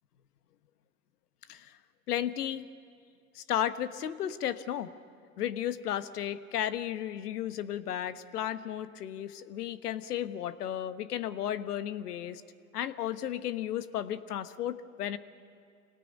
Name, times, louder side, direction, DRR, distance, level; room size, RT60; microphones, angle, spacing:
voice 1, 2.1-2.7 3.3-4.9 5.4-12.4 12.7-15.2, left 11 dB, 85° left, 12 dB, 1.2 m, -34 dB
25.5 x 19.0 x 9.2 m, 2.4 s
hypercardioid pair, 105°, 45 cm